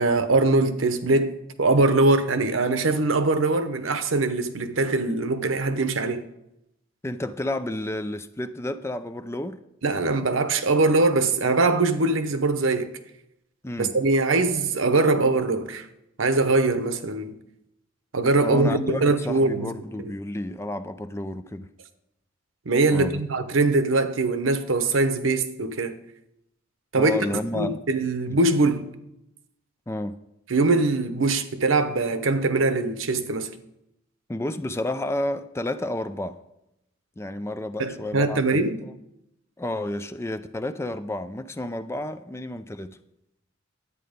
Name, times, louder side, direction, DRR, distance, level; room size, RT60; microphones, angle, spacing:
voice 1, 0.0-1.3 1.6-6.2 9.8-12.9 13.8-15.9 16.2-17.4 18.1-19.7 20.0-20.1 22.7-26.0 26.9-27.2 27.5-28.9 30.5-33.5 37.8-38.8, right 3 dB, 85° right, 0.9 m, -22 dB
voice 2, 7.0-9.6 13.6-13.9 18.4-21.7 22.9-23.2 27.0-27.8 28.3-28.4 29.9-30.2 34.3-36.4 37.2-38.9 39.6-43.0, left 1 dB, 15° left, 0.4 m, -31 dB
11.0 x 8.8 x 5.1 m
head